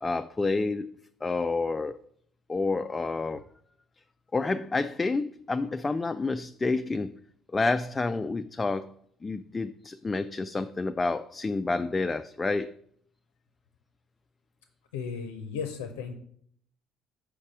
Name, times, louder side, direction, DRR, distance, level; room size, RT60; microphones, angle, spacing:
voice 1, 0.0-0.9 1.2-2.0 2.5-3.4 4.3-7.2 7.5-8.9 9.2-12.7, left 3 dB, 20° left, 0.3 m, -29 dB
voice 2, 14.9-16.1, left 6 dB, 70° left, 0.6 m, -35 dB
5.3 x 5.0 x 6.0 m
figure-of-eight pair, 55°, 0 cm